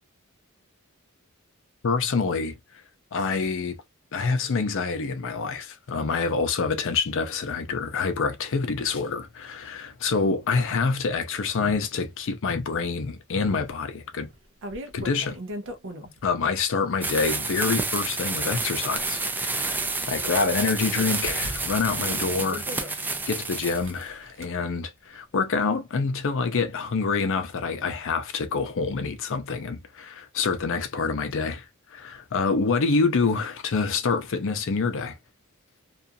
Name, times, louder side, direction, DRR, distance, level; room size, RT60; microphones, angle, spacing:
voice 1, 1.8-2.6 3.1-3.8 4.1-14.3 14.9-15.4 16.2-31.7 31.9-35.2, left 4 dB, 60° left, 0.5 m, -27 dB
sound 1, 13.7-13.8 14.3-16.3 17.0-18.0 18.7-20.1 20.4-20.5 21.2-23.1 23.7-24.5, equal, 60° right, 0.6 m, -39 dB
sound 2, 17.0-23.9, right 3 dB, 10° right, 0.3 m, -29 dB
2.4 x 2.4 x 2.6 m
head